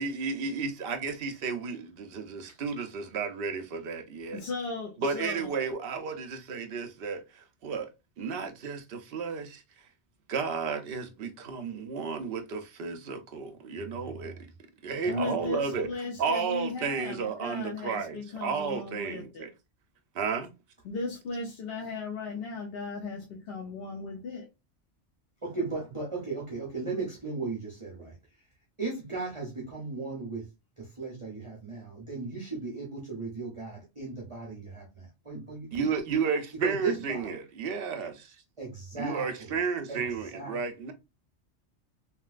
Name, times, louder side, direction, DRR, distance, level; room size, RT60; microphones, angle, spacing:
voice 1, 0.0-4.4 5.0-7.9 8.2-9.6 10.3-14.3 14.8-15.9 16.2-19.5 20.1-20.5 35.7-38.3 38.9-40.9, right 5 dB, 60° right, 0.8 m, -32 dB
voice 2, 4.3-5.5 15.1-19.5 20.8-24.5, left 3 dB, 60° left, 0.8 m, -36 dB
voice 3, 13.8-14.4 15.0-15.8 25.4-28.1 28.8-30.5 30.8-35.9 36.5-37.3 38.6-39.6 39.9-40.0 40.3-40.6, right 4 dB, 30° right, 0.9 m, -36 dB
3.0 x 3.0 x 2.4 m
omnidirectional pair, 1.2 m